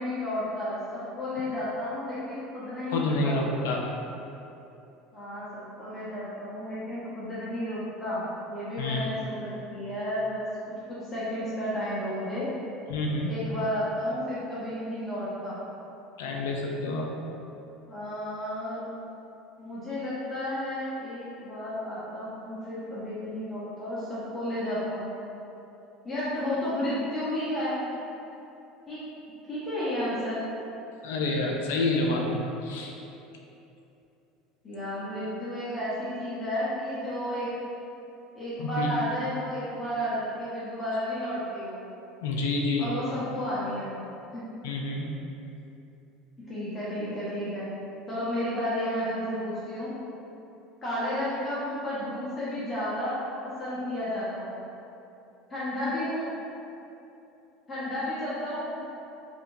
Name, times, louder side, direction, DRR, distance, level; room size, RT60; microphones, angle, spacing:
voice 1, 0.0-3.4 5.1-10.5 10.9-12.5 13.3-15.6 17.9-18.8 19.6-25.1 26.0-28.0 28.9-29.0 29.4-30.4 34.6-37.5 38.3-41.8 42.8-44.0 44.3-44.4 46.5-47.7 48.1-49.9 50.8-53.2 53.4-54.6 55.5-56.3 57.7-58.7, left 1 dB, 25° left, -11 dB, 0.8 m, -32 dB
voice 2, 2.9-3.9 8.8-9.1 12.9-13.5 16.2-17.2 31.0-32.9 38.6-38.9 42.2-42.9 44.6-45.1, left 2 dB, 75° left, 0 dB, 0.3 m, -28 dB
2.8 x 2.6 x 2.5 m, 2.9 s
hypercardioid pair, 80°, 0 cm